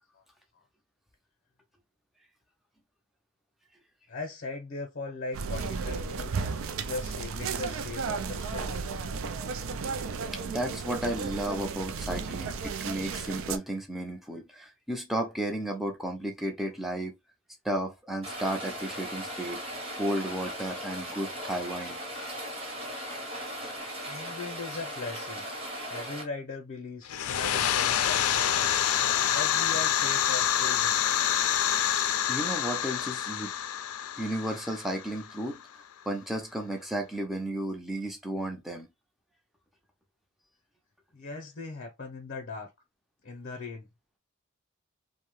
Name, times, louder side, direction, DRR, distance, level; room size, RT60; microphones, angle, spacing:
voice 1, 4.1-6.4 6.7-8.9 24.1-25.5 25.9-28.7 29.3-31.0 41.1-42.7 43.2-43.9, left 3 dB, 50° left, 0.7 m, -39 dB
sound 1, 5.3-13.6, right 5 dB, 65° right, 0.4 m, -34 dB
voice 2, 10.3-17.1 17.6-19.6 20.0-22.0 31.8-33.5 34.2-35.6 36.1-38.9, right 1 dB, ahead, 0.5 m, -33 dB
Rain, 18.2-26.2, equal, 25° right, 0.9 m, -38 dB
sound 2, 27.1-35.6, left 10 dB, 90° left, 0.4 m, -27 dB
2.7 x 2.1 x 3.0 m
head